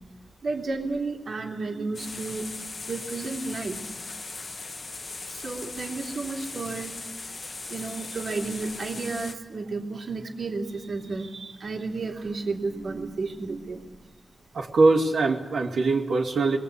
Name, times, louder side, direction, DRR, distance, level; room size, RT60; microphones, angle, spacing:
voice 1, 0.4-2.6 2.9-3.9 4.6-4.8 5.2-7.0 7.3-7.4 7.7-13.8, right 3 dB, 55° right, 1 dB, 2.8 m, -32 dB
sound 1, 1.9-9.3, left 3 dB, 40° left, 1.3 m, -38 dB
voice 2, 14.5-16.6, right 3 dB, 70° right, -2 dB, 2.7 m, -22 dB
27.5 x 21.5 x 8.4 m, 1.2 s
wide cardioid pair, 135°, 0 cm